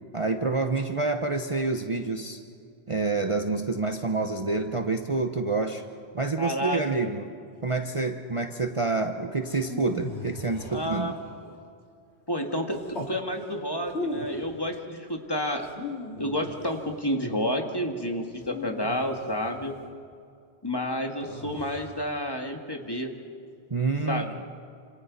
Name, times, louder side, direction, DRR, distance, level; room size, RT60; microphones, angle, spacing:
voice 1, 0.1-2.4 2.9-5.8 6.1-7.3 7.6-11.1 23.7-24.2, right 3 dB, 30° right, 5 dB, 0.9 m, -28 dB
voice 2, 6.4-7.2 10.7-11.1 12.3-15.7 16.2-19.8 20.6-23.1 24.1-24.4, equal, 20° left, 3 dB, 1.9 m, -30 dB
sound 1, 9.4-11.4 12.7-13.2 13.8-14.5 15.6-16.9 18.4-19.6 21.2-22.0, left 2 dB, 85° left, 3.3 m, -38 dB
28.0 x 27.0 x 4.1 m, 2.4 s
omnidirectional pair, 1.1 m